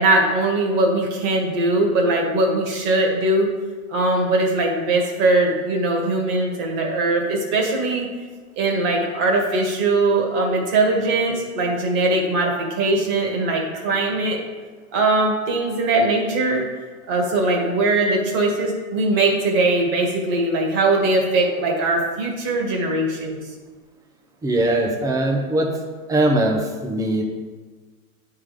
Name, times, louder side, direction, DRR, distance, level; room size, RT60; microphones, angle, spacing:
voice 1, 0.0-3.5 3.9-8.1 8.6-14.4 14.9-16.6 17.1-23.4, right 2 dB, 35° right, 1 dB, 1.8 m, -20 dB
voice 2, 24.4-25.7 26.1-27.2, right 1 dB, 10° right, 2 dB, 0.6 m, -20 dB
9.5 x 3.8 x 5.0 m, 1.4 s
hypercardioid pair, 140°, 42 cm